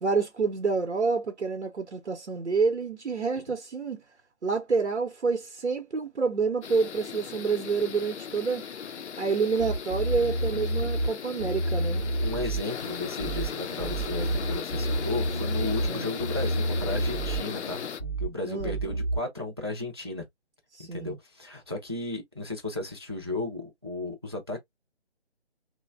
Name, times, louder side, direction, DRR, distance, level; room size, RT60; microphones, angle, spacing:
voice 1, 0.0-4.0 4.4-8.6 9.2-12.0 15.8-16.1 18.4-18.8 20.7-21.2, right 4 dB, 90° right, 0.7 m, -28 dB
sound 1, 6.6-18.0, left 7 dB, 80° left, 0.5 m, -37 dB
sound 2, 9.6-11.1 11.4-12.6 13.2-13.5 13.8-15.9 16.2-17.4 18.0-18.3 18.6-19.2, right 1 dB, 15° left, 0.6 m, -29 dB
voice 2, 12.2-17.8 18.2-20.3 20.9-24.6, left 2 dB, 25° right, 0.4 m, -34 dB
3.0 x 2.1 x 2.4 m
figure-of-eight pair, 150°, 34 cm